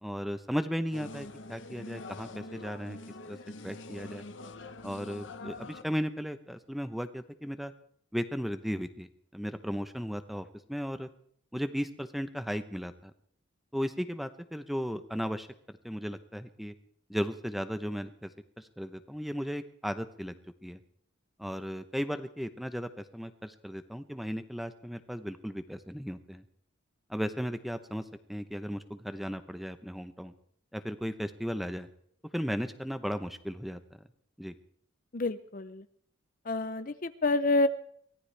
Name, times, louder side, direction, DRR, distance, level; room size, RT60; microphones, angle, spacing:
voice 1, 0.0-3.0 3.3-3.4 3.6-4.2 4.8-7.7 8.1-11.1 11.5-13.1 13.7-16.7 17.1-18.3 18.6-20.3 20.6-20.8 21.4-26.4 27.1-28.0 28.3-30.3 30.7-31.9 32.3-33.8 34.4-34.5, equal, ahead, 10 dB, 0.8 m, -36 dB
sound 1, 0.9-5.8, left 2 dB, 65° left, 1.0 m, -44 dB
voice 2, 35.1-35.8 36.5-37.7, left 2 dB, 40° left, 12 dB, 0.6 m, -28 dB
23.5 x 17.5 x 3.4 m, 0.63 s
head